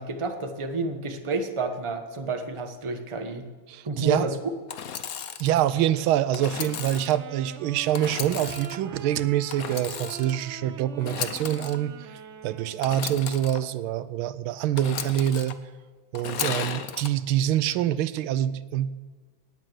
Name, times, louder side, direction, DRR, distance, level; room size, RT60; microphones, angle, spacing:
voice 1, 0.0-3.4 3.8-4.3, right 3 dB, 20° right, 5 dB, 0.9 m, -30 dB
voice 2, 3.7-4.3 5.4-12.1 12.4-15.6 16.1-18.9, right 11 dB, 85° right, 15 dB, 1.5 m, -25 dB
Engine / Sawing, 4.7-5.5 6.3-7.2 7.9-8.8 9.5-10.4 11.0-11.8 12.8-13.6 14.8-15.5 16.1-17.1, left 8 dB, 60° left, 1.0 m, -34 dB
Wind instrument woodwind instrument, 6.3-13.3, right 7 dB, 70° right, 0.6 m, -43 dB
19.0 x 7.7 x 7.7 m, 1.4 s
omnidirectional pair, 2.3 m